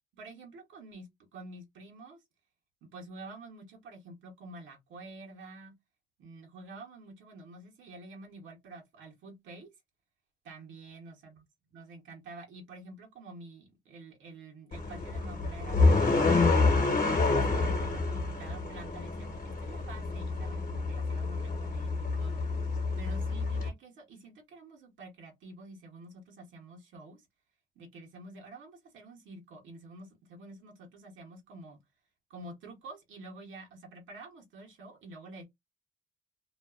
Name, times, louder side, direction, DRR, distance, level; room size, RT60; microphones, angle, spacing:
voice 1, 0.1-2.2 2.8-5.7 6.2-9.7 10.4-11.4 11.7-16.5 17.0-22.4 23.0-27.3 27.8-31.8 32.3-35.4, right 2 dB, 80° right, 0.9 m, -48 dB
sound 1, 14.7-23.7, left 3 dB, 45° left, 0.9 m, -28 dB
2.4 x 2.3 x 2.3 m
cardioid pair, 90°, 20 cm